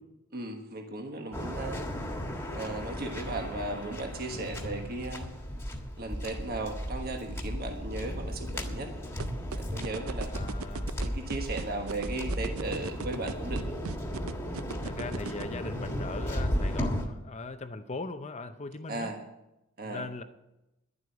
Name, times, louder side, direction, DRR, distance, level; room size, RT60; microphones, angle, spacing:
voice 1, 0.3-1.8 2.5-5.3 6.0-8.9 9.6-10.3 11.0-13.6 18.9-19.2 19.8-20.1, right 2 dB, 45° right, 4 dB, 1.4 m, -36 dB
Waves surf, 1.3-17.0, equal, 10° left, 1.6 m, -35 dB
sound 1, 9.2-15.4, right 5 dB, 75° right, 0.5 m, -37 dB
voice 2, 10.3-11.0 14.8-19.1 19.8-20.2, left 3 dB, 30° left, 9 dB, 0.6 m, -40 dB
11.0 x 7.8 x 9.3 m, 0.93 s
head